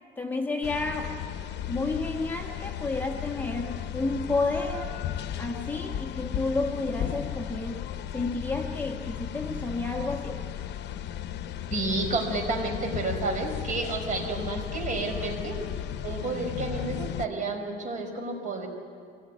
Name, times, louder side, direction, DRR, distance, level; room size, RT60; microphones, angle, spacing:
voice 1, 0.2-1.1 1.7-4.9 5.4-7.8 8.1-10.5, left 3 dB, 10° left, 1 dB, 1.5 m, -31 dB
sound 1, 0.6-17.3, left 10 dB, 65° left, 0.8 m, -35 dB
voice 2, 11.7-15.6 16.0-18.7, right 3 dB, 45° right, 3 dB, 4.9 m, -30 dB
23.5 x 18.5 x 9.5 m, 2.2 s
cardioid pair, 145°, 19 cm